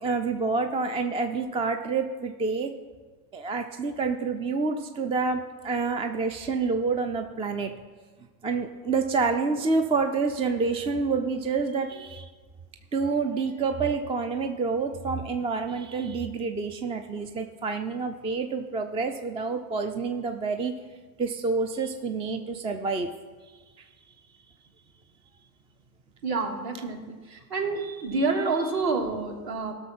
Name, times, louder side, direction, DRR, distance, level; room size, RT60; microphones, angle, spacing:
voice 1, 0.0-2.7 3.3-7.7 8.4-12.3 12.9-20.7 21.2-23.1 23.8-23.9, right 4 dB, 15° right, 6 dB, 0.4 m, -28 dB
voice 2, 26.2-29.7, right 3 dB, 45° right, 2 dB, 2.5 m, -28 dB
15.5 x 6.3 x 6.0 m, 1.4 s
hypercardioid pair, 105°, 49 cm